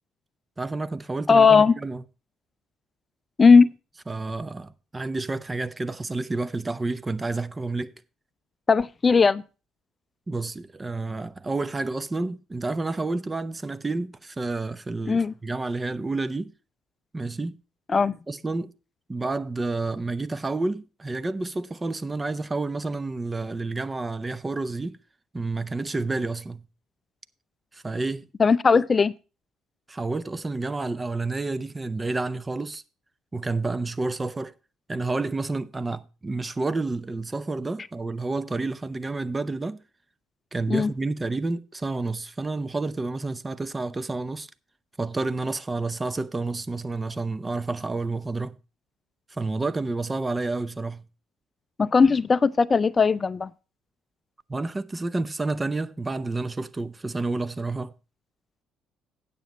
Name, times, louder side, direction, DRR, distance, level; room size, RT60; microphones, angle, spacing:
voice 1, 0.6-2.0 4.1-7.9 10.3-16.5 17.1-17.6 18.3-18.7 19.1-25.0 25.3-26.6 27.7-28.2 29.9-32.8 33.3-34.5 34.9-39.8 40.5-44.5 45.0-48.6 49.3-51.0 54.5-57.9, right 3 dB, 25° right, 0.6 m, -29 dB
voice 2, 1.3-1.7 3.4-3.7 8.7-9.4 15.1-15.3 17.9-18.1 28.4-29.1 40.7-40.9 51.8-53.5, left 5 dB, 35° left, 0.4 m, -18 dB
9.1 x 6.8 x 5.2 m
hypercardioid pair, 55°, 0 cm